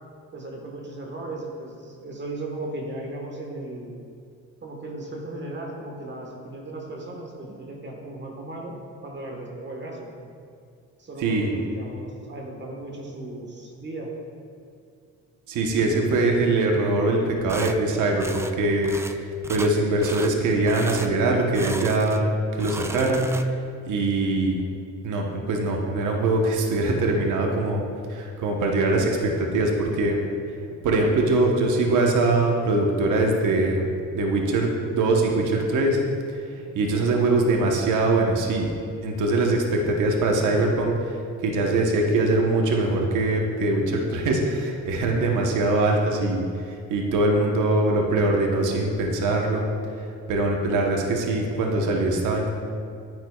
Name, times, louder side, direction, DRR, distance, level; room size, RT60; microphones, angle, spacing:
voice 1, 0.3-4.0 4.6-8.7 9.0-10.1 11.0-14.2 36.6-36.7, right 2 dB, 35° right, 0 dB, 1.4 m, -36 dB
voice 2, 11.2-11.6 15.5-23.3 23.9-24.6 25.0-27.8 28.1-30.2 30.8-33.9 34.1-36.0 36.3-36.4 36.7-38.7 39.0-49.7 50.0-52.5, right 2 dB, 80° right, 1 dB, 1.1 m, -22 dB
sound 1, 17.5-17.8 18.2-18.5 18.8-19.2 19.4-19.7 20.0-20.3 20.7-21.1 21.5-22.2 22.5-23.7, right 2 dB, 10° right, 0.3 m, -36 dB
9.4 x 9.4 x 2.3 m, 2.4 s
cardioid pair, 90°, 30 cm